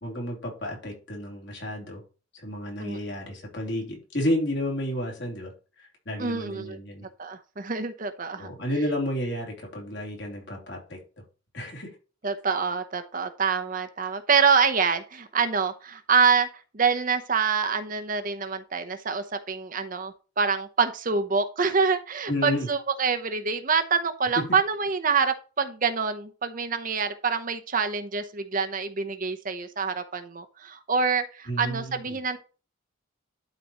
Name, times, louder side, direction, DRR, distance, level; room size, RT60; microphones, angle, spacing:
voice 1, 0.0-2.0 2.3-5.5 5.8-7.0 8.4-11.0 11.5-11.9 22.3-22.7 31.5-32.2, equal, 60° left, -1 dB, 3.1 m, -31 dB
voice 2, 6.2-6.8 7.2-8.5 12.2-32.4, right 5 dB, 40° right, 8 dB, 0.8 m, -26 dB
12.0 x 4.2 x 3.0 m, 0.34 s
head